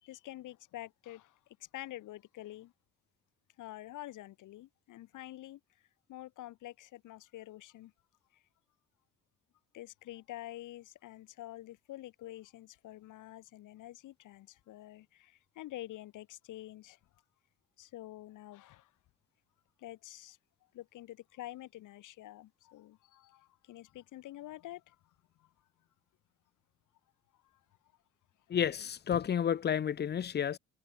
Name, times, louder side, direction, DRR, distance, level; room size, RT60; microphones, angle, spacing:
voice 1, 0.0-2.7 3.6-5.6 6.1-7.9 8.3-8.4 9.7-17.0 17.8-18.9 19.8-20.4 20.7-25.0 25.4-25.5 27.4-27.6, left 15 dB, 85° left, 4.4 m, -48 dB
voice 2, 28.5-30.6, left 8 dB, 35° left, 0.6 m, -31 dB
cardioid pair, 90°, 30 cm